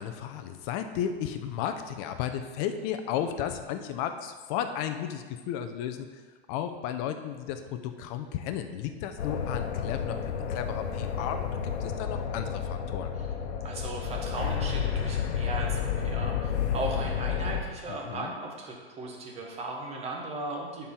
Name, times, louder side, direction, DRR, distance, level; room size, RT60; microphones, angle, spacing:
voice 1, 0.0-6.2 6.5-13.1 17.9-18.3, left 9 dB, 35° left, 8 dB, 0.6 m, -34 dB
sound 1, 9.2-17.6, left 7 dB, 75° left, 1.0 m, -31 dB
voice 2, 13.6-20.9, right 2 dB, 20° right, -1 dB, 1.3 m, -37 dB
10.5 x 4.5 x 3.8 m, 1.4 s
hypercardioid pair, 130°, 33 cm